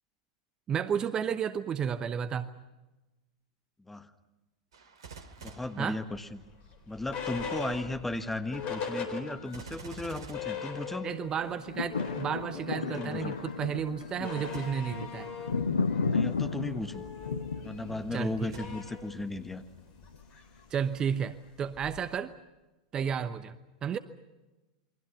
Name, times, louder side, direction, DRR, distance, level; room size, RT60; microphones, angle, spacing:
voice 1, 0.7-2.5 5.8-6.0 11.0-15.3 18.1-18.5 20.7-22.3 22.9-23.5 23.8-24.0, right 8 dB, 25° right, 12 dB, 0.9 m, -32 dB
voice 2, 3.8-4.1 5.4-6.4 6.9-11.1 12.5-13.3 14.3-14.4 16.1-17.0 17.6-19.6, left 2 dB, 5° left, 9 dB, 1.5 m, -36 dB
Gunshot gunfire, 4.7-6.7 9.5-11.5 14.5-15.1 15.7-15.8 18.5-19.2 19.8-19.9, right 5 dB, 65° right, 2.5 m, -49 dB
sound 1, 6.1-9.7 10.1-10.2 10.3-11.4 11.7-22.2, left 5 dB, 40° left, 3.9 m, -41 dB
sound 2, 11.3-19.6 20.1-20.2, left 4 dB, 75° left, 1.1 m, -34 dB
28.5 x 23.0 x 6.0 m, 1.1 s
figure-of-eight pair, 90°, 3 cm